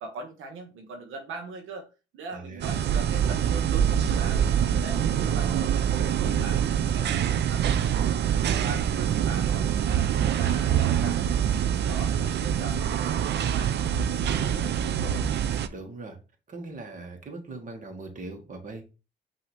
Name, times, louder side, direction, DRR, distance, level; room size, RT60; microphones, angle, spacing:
voice 1, 0.0-1.9 2.1-6.6 6.9-11.2 11.6-13.9 14.2-15.3, right 3 dB, 85° right, 4 dB, 0.9 m, -41 dB
voice 2, 2.3-2.8 5.3-5.8 15.7-16.2 16.5-18.9, right 3 dB, 40° right, 3 dB, 1.4 m, -40 dB
sound 1, 2.6-15.7, right 9 dB, 60° right, 0.5 m, -25 dB
5.7 x 2.8 x 3.3 m, 0.30 s
cardioid pair, 90°, 20 cm